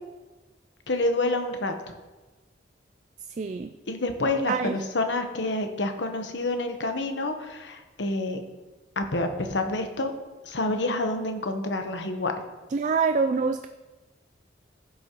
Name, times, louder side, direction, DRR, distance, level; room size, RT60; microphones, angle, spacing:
voice 1, 0.9-1.7 3.9-8.4 9.0-10.1 10.4-12.4, left 2 dB, 80° left, 6 dB, 1.0 m, -28 dB
voice 2, 3.4-3.7 4.5-4.7 12.7-13.7, right 5 dB, 40° right, 7 dB, 0.3 m, -25 dB
15.5 x 6.3 x 3.0 m, 1.2 s
head